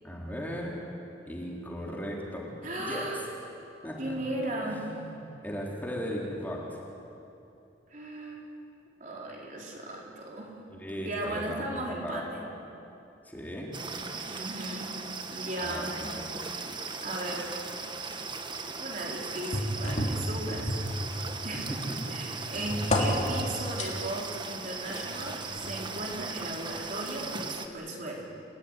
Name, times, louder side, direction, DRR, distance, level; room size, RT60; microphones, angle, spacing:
voice 1, 0.0-0.8 1.3-3.2 3.8-4.2 4.6-6.8 10.7-12.2 13.3-13.7 15.6-16.2 21.5-22.0 22.5-22.8, equal, 10° left, -3 dB, 3.8 m, -37 dB
voice 2, 2.6-3.2 4.0-4.8 7.9-8.5 9.0-10.5 11.0-12.5 14.3-15.0 15.3-15.9 17.0-17.5 18.8-20.7 21.4-21.7 22.1-28.3, right 1 dB, 45° right, -2 dB, 4.3 m, -36 dB
sound 1, 13.7-27.7, right 4 dB, 25° right, 1.4 m, -38 dB
sound 2, 19.5-21.5 21.9-23.9 24.9-25.8 26.5-26.6, equal, 40° left, 3.3 m, -31 dB
28.5 x 16.5 x 10.0 m, 2.8 s
head